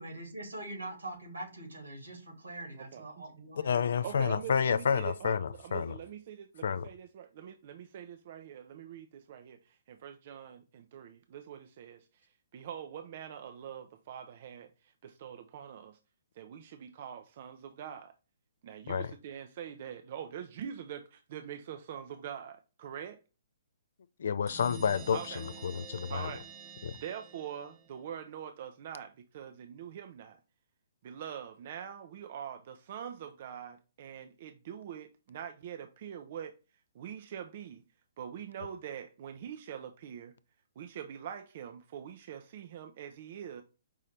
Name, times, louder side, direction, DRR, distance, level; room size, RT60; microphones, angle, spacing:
voice 1, 0.0-3.9, right 2 dB, 85° right, 2.0 m, -43 dB
voice 2, 2.8-3.2 4.0-16.0 16.4-18.1 18.6-23.2 25.1-25.4 26.0-26.4 27.0-30.4 31.0-36.5 36.9-37.8 38.2-40.3 40.8-43.6, right 9 dB, 50° right, 0.4 m, -44 dB
voice 3, 3.6-6.0 6.6-6.9 18.9-19.1 24.2-26.3 26.8-27.0, left 7 dB, 65° left, 0.3 m, -30 dB
sound 1, 24.5-28.0, right 6 dB, 20° right, 0.8 m, -49 dB
5.3 x 2.8 x 3.2 m
figure-of-eight pair, 125°, 0 cm